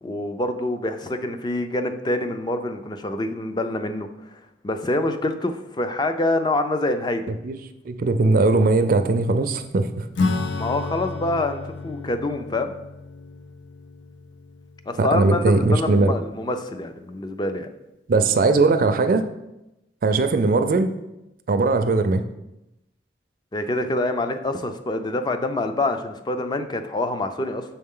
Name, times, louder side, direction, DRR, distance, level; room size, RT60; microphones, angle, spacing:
voice 1, 0.0-4.1 4.6-7.4 10.5-12.7 14.9-17.7 23.5-27.6, left 2 dB, 25° left, 8 dB, 0.4 m, -26 dB
voice 2, 7.8-10.1 15.0-16.1 18.1-19.3 20.0-20.9 21.5-22.2, right 3 dB, 50° right, 9 dB, 0.4 m, -19 dB
Acoustic guitar / Strum, 10.1-16.1, left 3 dB, 90° left, 0.5 m, -31 dB
6.3 x 4.2 x 3.7 m, 0.93 s
head